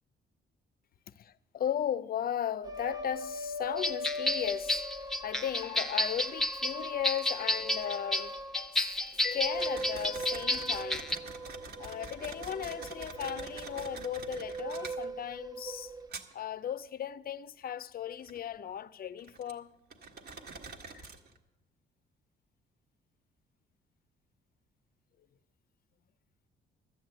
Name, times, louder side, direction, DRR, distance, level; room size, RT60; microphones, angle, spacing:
voice 1, 1.2-11.1 11.8-15.9 16.3-19.7 20.9-21.1, left 9 dB, 50° left, 0.5 m, -36 dB
sound 1, 2.6-8.7 9.2-16.1, equal, 20° right, 1.1 m, -40 dB
sound 2, 3.8-11.2, left 1 dB, ahead, 0.8 m, -31 dB
sound 3, 9.6-15.5 16.0-16.7 17.7-17.8 18.2-19.5 19.9-21.4, right 3 dB, 55° right, 1.4 m, -46 dB
12.0 x 8.5 x 8.1 m
cardioid pair, 90°, 20 cm